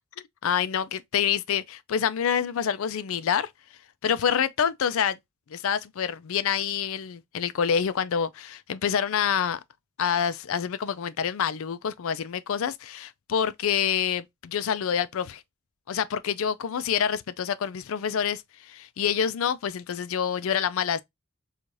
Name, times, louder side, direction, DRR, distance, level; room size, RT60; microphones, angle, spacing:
voice 1, 0.4-3.5 4.0-5.2 5.5-9.6 10.0-15.4 15.9-18.4 18.7-21.0, left 8 dB, 60° left, 0.4 m, -27 dB
4.6 x 2.4 x 2.6 m
head